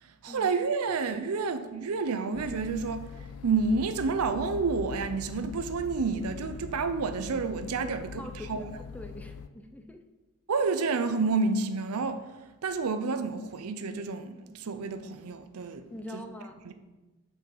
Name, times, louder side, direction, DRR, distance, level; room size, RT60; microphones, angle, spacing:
voice 1, 0.0-3.1 3.4-8.7 10.5-12.2 12.6-15.8 16.1-16.2 16.6-16.7, right 4 dB, 85° right, 0.5 m, -29 dB
sound 1, 2.3-9.5, left 6 dB, 80° left, 0.4 m, -42 dB
voice 2, 7.8-10.0 15.9-16.6, left 1 dB, 5° left, 0.4 m, -43 dB
6.9 x 5.7 x 4.6 m
head